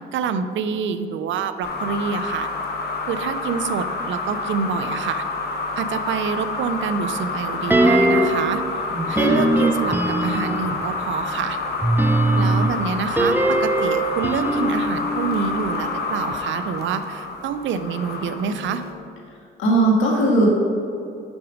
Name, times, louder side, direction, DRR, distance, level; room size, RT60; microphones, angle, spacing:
voice 1, 0.1-2.5 3.0-5.2 5.8-8.6 9.1-11.6 12.4-18.8, right 6 dB, 70° right, 11 dB, 0.5 m, -27 dB
sound 1, 1.6-18.9, left 3 dB, 55° left, 1.2 m, -28 dB
sound 2, 7.7-8.5 9.1-10.8 11.8-16.0 16.3-16.4, right 1 dB, 10° right, 0.6 m, -21 dB
voice 2, 8.9-9.4 19.6-20.5, right 2 dB, 80° left, -2 dB, 1.8 m, -19 dB
6.1 x 6.1 x 5.1 m, 2.5 s
cardioid pair, 90°, 20 cm